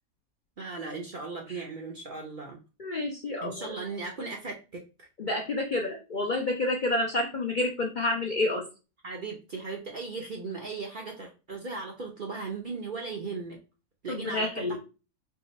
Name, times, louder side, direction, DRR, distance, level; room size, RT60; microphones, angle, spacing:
voice 1, 0.6-2.6 3.4-5.1 9.0-13.6 14.0-14.8, right 4 dB, 50° right, 0 dB, 0.6 m, -37 dB
voice 2, 2.8-3.7 5.2-8.6 14.1-14.8, left 2 dB, 50° left, 0 dB, 0.6 m, -29 dB
3.8 x 2.4 x 4.1 m, 0.31 s
omnidirectional pair, 1.5 m